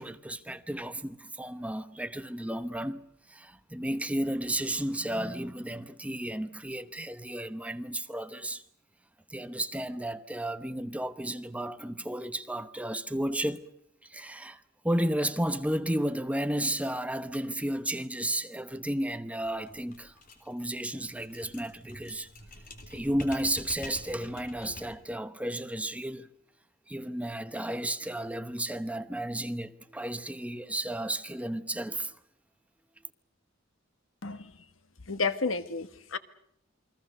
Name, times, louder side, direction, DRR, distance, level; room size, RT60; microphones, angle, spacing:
voice 1, 0.0-3.0 3.3-8.6 9.3-13.6 14.1-14.6 14.8-20.1 20.4-22.3 22.9-26.3 26.9-32.1, right 1 dB, 5° right, 0.9 m, -33 dB
sound 1, 19.4-25.1, left 2 dB, 45° left, 3.6 m, -47 dB
voice 2, 34.2-34.5 35.1-36.2, left 4 dB, 85° left, 1.5 m, -31 dB
28.5 x 22.5 x 6.6 m
head